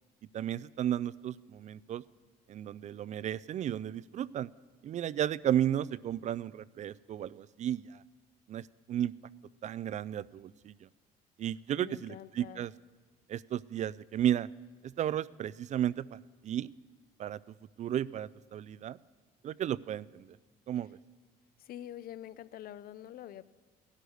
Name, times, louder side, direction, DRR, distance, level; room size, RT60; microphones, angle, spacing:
voice 1, 0.3-2.0 2.5-4.5 4.8-8.0 8.5-9.1 9.6-10.9 11.4-12.7 13.3-14.5 14.8-16.7 17.2-17.4 17.8-19.0 19.4-20.3 20.7-21.0, right 10 dB, 45° right, 20 dB, 0.4 m, -33 dB
voice 2, 11.7-12.7 21.6-23.4, left 11 dB, 60° left, 17 dB, 0.6 m, -46 dB
17.0 x 11.5 x 6.5 m, 1.3 s
cardioid pair, 110°, 17 cm